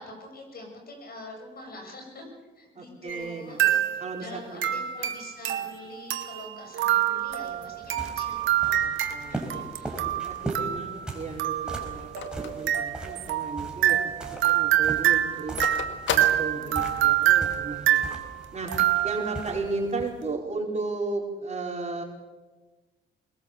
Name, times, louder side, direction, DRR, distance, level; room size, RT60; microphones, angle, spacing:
voice 1, 0.0-10.0 16.5-17.1, left 1 dB, 50° left, 2 dB, 6.9 m, -45 dB
voice 2, 2.7-3.6 4.0-4.7 8.8-11.5 11.8-14.0 14.4-15.6 16.1-18.1 18.5-18.7 19.0-22.0, right 3 dB, 35° right, 0 dB, 4.9 m, -34 dB
sound 1, 3.1-3.3 3.6-4.2 4.6-19.5, right 12 dB, 75° right, 1.6 m, -26 dB
sound 2, 7.2-20.2, right 2 dB, 5° right, 4.8 m, -40 dB
Telephone, 10.1-13.5 13.9-14.0 14.3-17.2, left 7 dB, 70° left, 1.9 m, -35 dB
21.5 x 20.5 x 7.0 m, 1.3 s
cardioid pair, 90°, 20 cm